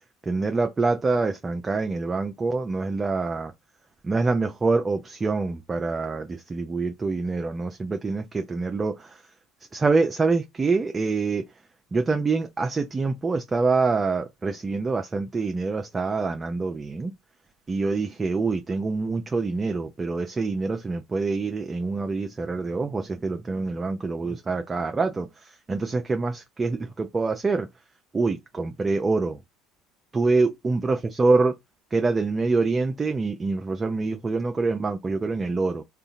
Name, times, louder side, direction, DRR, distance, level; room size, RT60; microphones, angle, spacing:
voice 1, 0.3-3.5 4.0-9.2 9.7-11.5 11.9-17.1 17.7-27.7 28.1-29.4 30.1-31.5 31.9-35.8, right 3 dB, 25° right, 0.5 m, -25 dB
2.7 x 2.4 x 2.5 m
hypercardioid pair, 65°, 0 cm